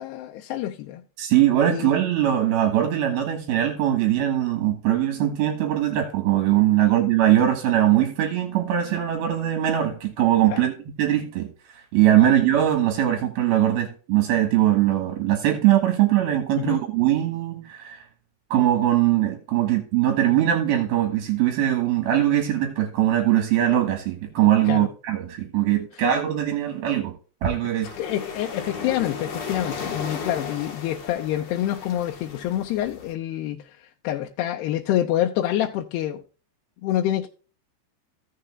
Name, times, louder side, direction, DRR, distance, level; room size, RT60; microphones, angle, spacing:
voice 1, 0.0-1.0 1.7-2.0 6.8-7.0 10.5-10.7 12.2-12.3 16.6-16.8 24.7-24.9 25.9-26.0 28.0-36.2 36.8-37.3, left 12 dB, 90° left, 2.7 m, -27 dB
voice 2, 1.2-10.7 11.0-11.5 11.7-18.0 18.5-27.2 27.4-27.9, right 12 dB, 70° right, 3.2 m, -21 dB
sound 1, 27.8-33.1, left 5 dB, 55° left, 2.9 m, -35 dB
15.5 x 6.7 x 2.3 m
omnidirectional pair, 4.7 m